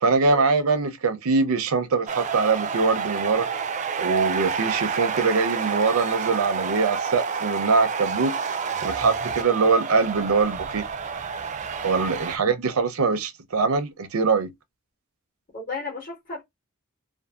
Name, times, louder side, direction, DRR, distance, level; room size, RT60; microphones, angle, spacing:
voice 1, 0.0-3.5 4.0-8.4 8.8-10.8 11.8-14.5, right 4 dB, 85° right, 0.6 m, -23 dB
sound 1, 2.1-12.4, right 6 dB, 35° right, 0.4 m, -29 dB
voice 2, 15.5-16.4, left 3 dB, 40° left, 1.0 m, -34 dB
2.6 x 2.4 x 2.3 m
head